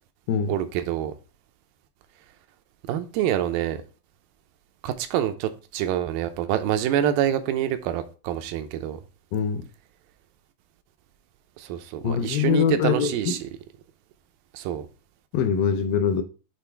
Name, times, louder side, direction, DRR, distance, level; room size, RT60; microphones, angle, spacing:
voice 1, 0.5-1.1 2.9-3.8 4.8-9.0 11.6-13.4 14.5-14.9, right 10 dB, 85° right, 2.4 m, -26 dB
voice 2, 9.3-9.7 12.0-13.4 15.3-16.2, left 7 dB, 80° left, 2.2 m, -23 dB
8.1 x 3.3 x 4.4 m
omnidirectional pair, 4.0 m